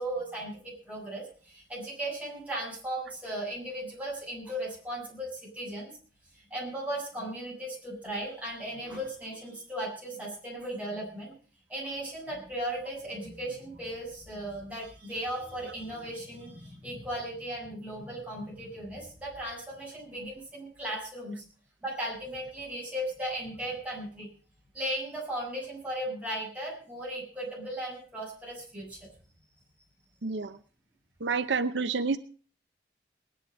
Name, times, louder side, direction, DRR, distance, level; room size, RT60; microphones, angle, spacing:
voice 1, 0.0-5.9 6.3-11.3 11.7-21.4 21.8-24.3 24.7-29.1, right 1 dB, 10° right, -4 dB, 7.7 m, -37 dB
voice 2, 30.2-30.5 31.2-32.2, right 4 dB, 75° right, 11 dB, 0.7 m, -28 dB
19.5 x 10.5 x 5.5 m, 0.42 s
head